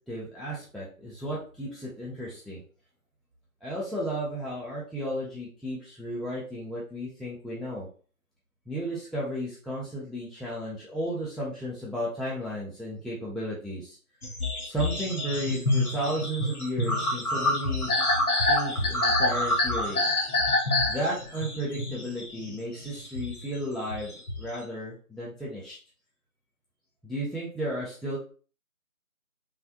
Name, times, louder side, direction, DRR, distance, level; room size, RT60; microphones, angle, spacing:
voice 1, 0.1-2.6 3.6-7.9 8.7-14.0 14.6-18.0 18.4-20.0 20.9-24.1 24.4-25.8 27.0-28.2, right 1 dB, ahead, -6 dB, 0.5 m, -33 dB
sound 1, 14.2-24.6, left 2 dB, 75° left, 1.0 m, -27 dB
3.1 x 2.0 x 2.6 m, 0.40 s
figure-of-eight pair, 180°, 45 cm